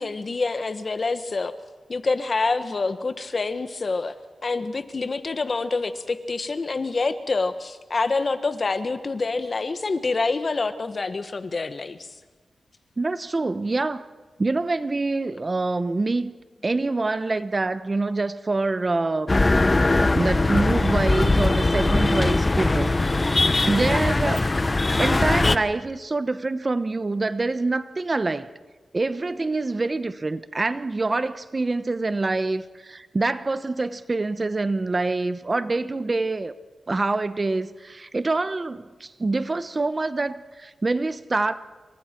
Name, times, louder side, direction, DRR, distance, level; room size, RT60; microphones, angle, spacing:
voice 1, 0.0-1.5 1.9-4.1 4.4-12.1, left 3 dB, 50° left, 10 dB, 1.4 m, -26 dB
voice 2, 13.0-14.0 14.4-16.3 16.6-19.3 20.1-23.3 23.6-24.5 25.0-28.5 28.9-36.5 36.9-41.5, right 3 dB, 35° right, 13 dB, 1.0 m, -25 dB
sound 1, 19.3-25.6, left 2 dB, 30° left, 1.0 m, -20 dB
28.0 x 25.0 x 4.6 m, 1.3 s
cardioid pair, 70°, 0 cm